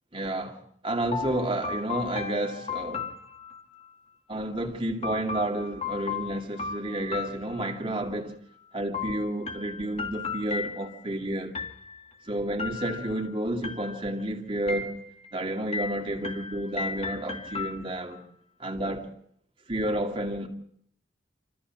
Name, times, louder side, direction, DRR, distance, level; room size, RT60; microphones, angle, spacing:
voice 1, 0.1-3.1 4.3-8.3 8.7-11.6 12.3-15.0 15.3-18.2 18.6-19.1 19.7-20.5, right 1 dB, 30° right, 2.5 m, -31 dB
sound 1, 1.1-3.9 5.0-8.0 8.9-11.1 11.6-12.2 12.6-13.3 13.6-14.3 14.7-15.3 15.7-18.2, left 5 dB, 35° left, 1.6 m, -36 dB
28.0 x 14.0 x 7.5 m
head